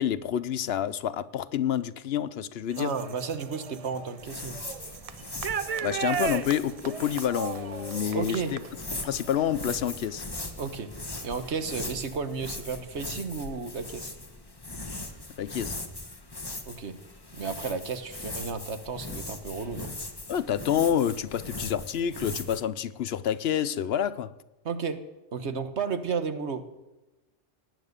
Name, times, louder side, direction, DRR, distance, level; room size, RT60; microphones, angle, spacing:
voice 1, 0.0-2.9 5.8-8.6 9.0-10.2 15.4-15.7 20.3-24.3, left 9 dB, 70° left, 16 dB, 0.8 m, -28 dB
sound 1, 2.7-10.4 10.9-12.0, right 7 dB, 45° right, 0.5 m, -37 dB
voice 2, 2.8-4.6 8.1-8.5 10.6-10.9 11.2-14.1 16.6-17.0 17.3-19.9 24.6-25.0 25.3-26.6, right 5 dB, 80° right, 10 dB, 1.4 m, -33 dB
sound 2, 4.2-22.6, left 2 dB, 20° left, 1.3 m, -40 dB
18.5 x 9.2 x 6.6 m, 1.0 s
omnidirectional pair, 1.1 m